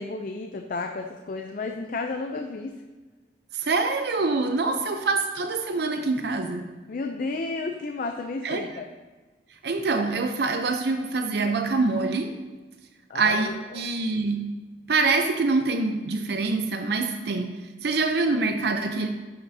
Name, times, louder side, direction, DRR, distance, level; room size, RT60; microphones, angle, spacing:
voice 1, 0.0-2.8 4.6-4.9 6.9-8.9 13.1-13.8, left 3 dB, 50° left, 5 dB, 0.4 m, -32 dB
voice 2, 3.5-6.7 8.4-8.7 9.6-12.4 13.1-14.5 14.9-17.5 17.8-19.1, right 3 dB, 65° right, 6 dB, 0.6 m, -25 dB
10.5 x 5.7 x 2.7 m, 1.3 s
head